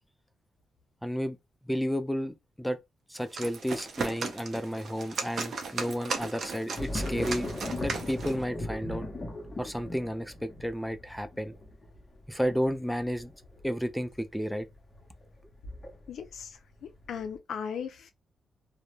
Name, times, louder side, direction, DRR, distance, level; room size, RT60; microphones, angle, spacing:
voice 1, 1.0-1.4 1.6-2.8 3.1-7.5 7.8-9.1 9.6-11.5 12.3-13.3 13.6-14.7, equal, ahead, 0.3 m, -32 dB
sound 1, 3.1-8.4, right 4 dB, 55° right, 0.5 m, -36 dB
sound 2, 6.8-16.4 16.8-17.4, left 1 dB, 30° left, 0.7 m, -38 dB
voice 2, 16.1-16.5 17.1-18.1, left 7 dB, 75° left, 0.4 m, -36 dB
2.1 x 2.1 x 2.9 m
cardioid pair, 105°, 0 cm